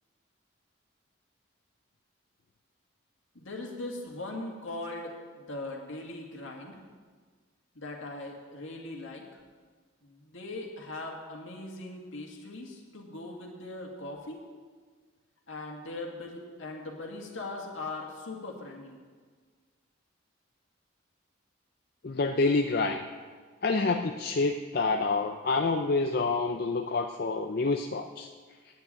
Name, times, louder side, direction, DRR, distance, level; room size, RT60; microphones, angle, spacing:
voice 1, 3.3-6.8 7.8-9.4 10.0-14.4 15.5-19.0, left 2 dB, 70° left, 0 dB, 2.0 m, -40 dB
voice 2, 22.0-23.0 23.6-28.3, left 3 dB, 50° left, 5 dB, 0.4 m, -27 dB
9.4 x 8.1 x 8.7 m, 1.5 s
head